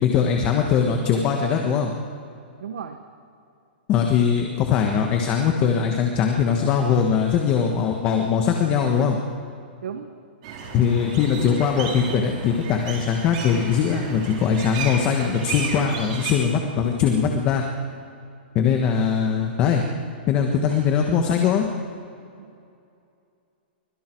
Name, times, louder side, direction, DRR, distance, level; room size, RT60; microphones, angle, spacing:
voice 1, 0.0-1.9 3.9-9.2 10.7-17.6 18.5-19.8 20.3-21.7, left 7 dB, 20° left, 3 dB, 1.4 m, -21 dB
voice 2, 2.6-3.0 9.8-10.1 20.7-20.9 22.4-22.6, right 7 dB, 70° right, 7 dB, 1.3 m, -35 dB
sound 1, 10.4-16.3, right 5 dB, 35° right, 4.0 m, -33 dB
24.5 x 23.0 x 4.6 m, 2.5 s
hypercardioid pair, 170°, 6 cm